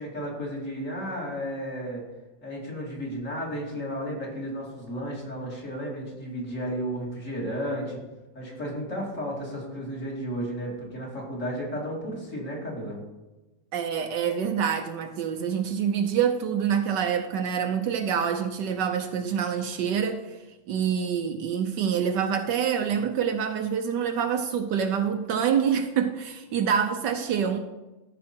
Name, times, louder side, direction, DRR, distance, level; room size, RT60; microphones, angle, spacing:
voice 1, 0.0-2.0 2.4-8.0 8.3-13.0, equal, 40° left, -3 dB, 2.8 m, -33 dB
voice 2, 13.7-20.4 20.7-27.6, right 7 dB, 70° right, 7 dB, 1.3 m, -26 dB
14.0 x 5.2 x 4.4 m, 1.1 s
omnidirectional pair, 2.1 m